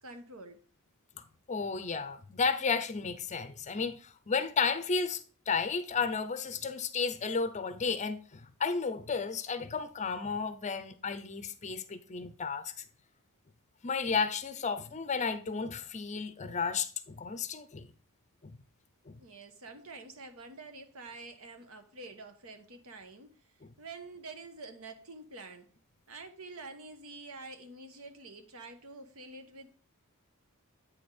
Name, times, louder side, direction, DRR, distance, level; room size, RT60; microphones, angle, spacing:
voice 1, 0.0-0.6 19.2-23.5 23.8-25.7 26.1-29.7, right 3 dB, 70° right, 1.2 m, -47 dB
voice 2, 1.2-12.8 13.8-17.9 18.4-18.6 19.1-19.2 23.6-23.7, left 5 dB, 30° left, 0.6 m, -33 dB
8.8 x 4.3 x 4.9 m
head